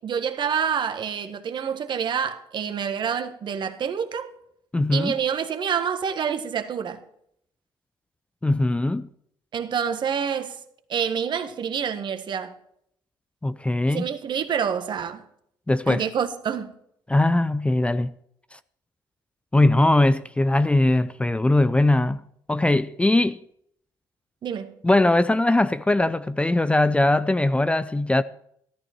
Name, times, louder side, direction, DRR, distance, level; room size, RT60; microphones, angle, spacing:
voice 1, 0.0-4.3 4.9-7.0 9.5-10.6 10.9-12.5 13.9-15.2 15.9-16.7 24.4-24.7, right 7 dB, 50° right, 1.5 m, -27 dB
voice 2, 4.7-5.2 8.4-9.1 13.4-14.1 15.7-16.0 17.1-18.1 19.5-22.2 22.5-23.4 24.8-28.2, left 2 dB, 10° left, 0.5 m, -20 dB
13.5 x 13.5 x 4.5 m
hypercardioid pair, 60°, 10 cm